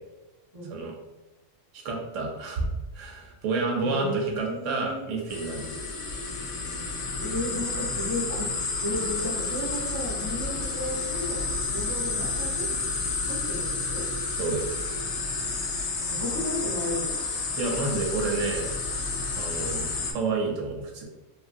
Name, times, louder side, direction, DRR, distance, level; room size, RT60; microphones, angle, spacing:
voice 1, 1.7-2.7 2.9-5.7 14.3-14.6 17.6-18.8 19.4-21.0, right 3 dB, 80° right, 0 dB, 1.0 m, -29 dB
voice 2, 3.8-5.1 7.2-8.5 8.8-11.4 11.7-12.7 13.2-14.0 16.0-17.2, left 1 dB, 25° right, -8 dB, 0.5 m, -33 dB
sound 1, 5.3-20.1, left 3 dB, 70° left, 0.9 m, -30 dB
2.9 x 2.5 x 2.5 m, 1.1 s
omnidirectional pair, 1.3 m